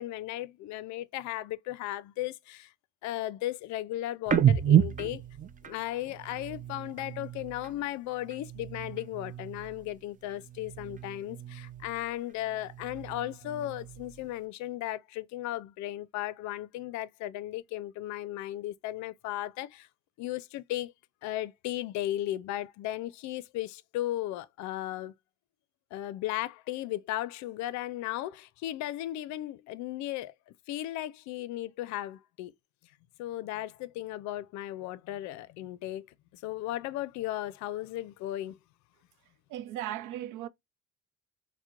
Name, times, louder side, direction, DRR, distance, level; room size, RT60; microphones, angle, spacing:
voice 1, 0.0-2.7 3.0-5.2 5.6-19.9 20.2-20.9 21.2-25.1 25.9-30.3 30.7-32.5 33.2-36.1 36.3-38.6, left 14 dB, 65° left, 0.5 m, -36 dB
sound 1, 4.3-7.8 8.1-10.0 10.3-12.1 12.5-14.3, right 10 dB, 25° right, 0.5 m, -31 dB
voice 2, 39.5-40.5, right 13 dB, 75° right, 0.6 m, -36 dB
4.3 x 2.1 x 2.4 m
cardioid pair, 100°, 30 cm